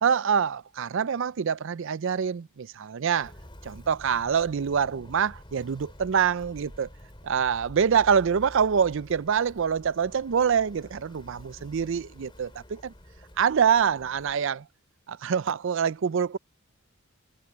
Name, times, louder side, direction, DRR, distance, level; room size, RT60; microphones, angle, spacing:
voice 1, 0.0-3.3 3.6-6.9 7.2-12.9 13.4-14.7 15.1-16.4, right 7 dB, 60° right, 0.4 m, -25 dB
Walk footsteps, 3.1-14.4, equal, 25° left, 4.1 m, -49 dB
head